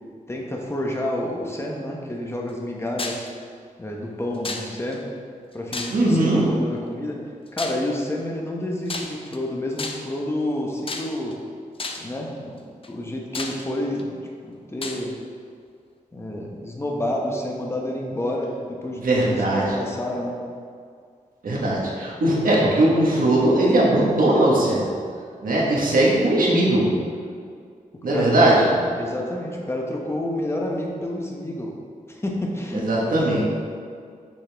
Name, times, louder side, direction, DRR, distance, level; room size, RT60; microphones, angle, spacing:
voice 1, 0.3-3.3 3.8-5.0 5.5-7.2 7.5-11.4 12.0-12.6 12.9-14.1 14.4-15.1 16.1-19.2 19.5-20.4 25.7-25.9 28.1-31.7 32.1-33.4, left 1 dB, 20° left, -1 dB, 0.9 m, -29 dB
sound 1, 3.0-3.3 4.4-5.0 5.7-6.3 7.6-7.9 8.9-9.4 9.8-10.2 10.9-11.3 11.8-12.1 12.8-12.9 13.3-14.0 14.8-15.0, left 3 dB, 40° left, 0.6 m, -32 dB
voice 2, 5.9-6.4 19.0-19.8 21.4-24.8 25.4-26.9 28.0-28.7 32.7-33.4, right 1 dB, 90° right, -5 dB, 1.4 m, -19 dB
6.4 x 6.3 x 3.4 m, 2.2 s
wide cardioid pair, 125°, 14 cm